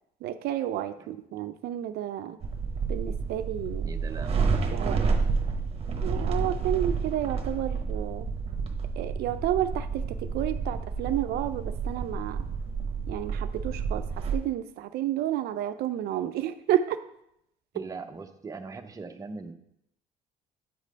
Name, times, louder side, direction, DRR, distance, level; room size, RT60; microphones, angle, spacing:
voice 1, 0.2-2.4 2.9-3.9 4.7-5.0 6.0-8.3 9.0-12.4 13.1-17.0, right 12 dB, 70° right, 10 dB, 0.4 m, -31 dB
sound 1, 2.4-14.4, right 5 dB, 35° right, 0.9 m, -30 dB
voice 2, 3.8-4.9 17.7-19.5, right 4 dB, 20° right, 6 dB, 0.6 m, -40 dB
8.2 x 3.2 x 5.1 m, 0.78 s
cardioid pair, 110°, 17 cm